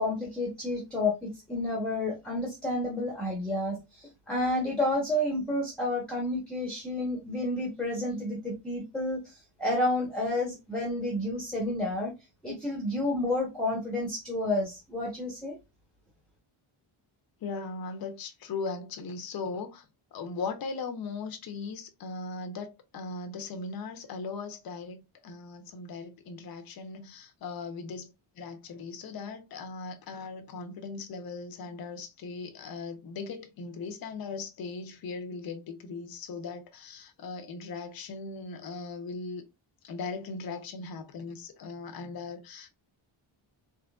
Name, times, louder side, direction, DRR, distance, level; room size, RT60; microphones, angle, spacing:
voice 1, 0.0-9.3 9.6-12.1 12.4-15.6, left 1 dB, ahead, 0.8 m, -30 dB
voice 2, 17.4-19.8 20.1-39.4 39.8-42.7, left 4 dB, 45° left, 0.6 m, -38 dB
3.6 x 3.0 x 2.3 m
wide cardioid pair, 150°, 50 cm